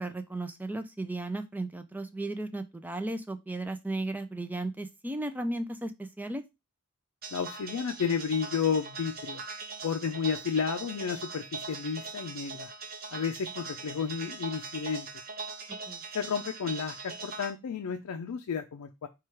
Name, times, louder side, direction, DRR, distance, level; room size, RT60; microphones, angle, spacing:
voice 1, 0.0-6.4 15.9-16.0, right 2 dB, 10° right, 9 dB, 0.3 m, -35 dB
sound 1, 7.2-17.5, right 4 dB, 45° right, 0.6 m, -41 dB
voice 2, 7.3-9.4 9.8-12.7 13.1-15.1 16.1-19.1, left 6 dB, 85° left, 5 dB, 0.4 m, -32 dB
4.5 x 2.3 x 4.5 m, 0.23 s
head